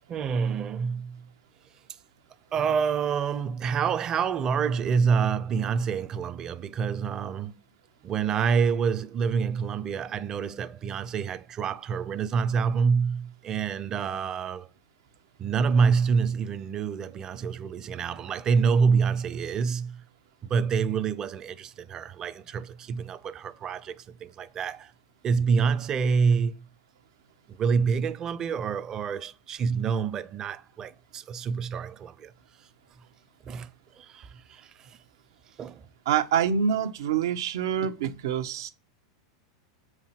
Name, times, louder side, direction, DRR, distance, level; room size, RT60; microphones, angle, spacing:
voice 1, 0.1-1.2 2.5-7.6 8.0-14.7 15.4-20.0 20.4-24.9 25.2-26.6 27.6-32.3 33.5-33.7 34.0-35.0 35.6-35.8, right 6 dB, 30° right, 0.7 m, -27 dB
voice 2, 36.0-38.7, right 8 dB, 75° right, 1.0 m, -26 dB
6.9 x 4.8 x 5.9 m
supercardioid pair, 125°, 2 cm